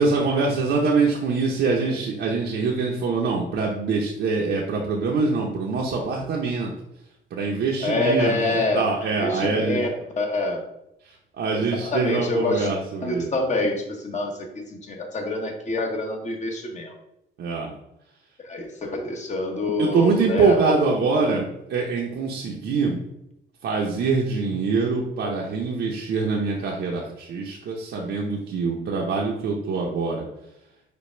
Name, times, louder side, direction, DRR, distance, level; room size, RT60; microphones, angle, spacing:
voice 1, 0.0-6.7 7.3-9.8 11.0-13.3 17.4-17.7 19.8-23.0 23.6-30.3, right 4 dB, 65° right, -2 dB, 0.8 m, -24 dB
voice 2, 7.8-9.9 10.2-10.6 11.5-12.7 13.0-16.9 18.4-20.7, left 2 dB, 35° left, 2 dB, 1.1 m, -26 dB
5.2 x 2.3 x 4.4 m, 0.83 s
cardioid pair, 90°, 20 cm